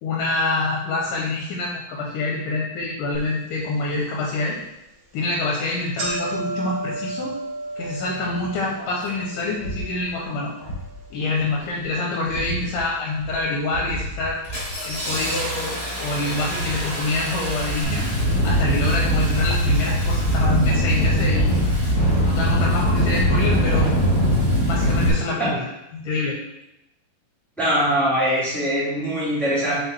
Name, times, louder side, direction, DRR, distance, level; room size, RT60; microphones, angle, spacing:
voice 1, 0.0-4.6 5.1-7.4 7.8-10.5 11.1-14.4 14.8-18.1 18.4-21.5 22.3-23.9 24.7-25.6 25.9-26.4, left 2 dB, 75° left, -2 dB, 2.2 m, -26 dB
sound 1, 3.1-3.2 3.8-3.9 4.7-4.9 5.2-5.3 5.6-13.8 14.1-14.8 15.6-15.7 16.7-16.8 17.0-17.1 17.7-17.8, right 2 dB, 50° right, 2.1 m, -35 dB
Engine starting, 8.8-8.9 9.6-9.9 10.6-10.9 11.3-11.8 12.3-12.8 13.2-13.4 13.7-25.1, equal, 20° left, 1.7 m, -22 dB
voice 2, 27.6-29.8, equal, ahead, -9 dB, 0.8 m, -22 dB
6.4 x 4.3 x 3.4 m, 0.87 s
omnidirectional pair, 4.2 m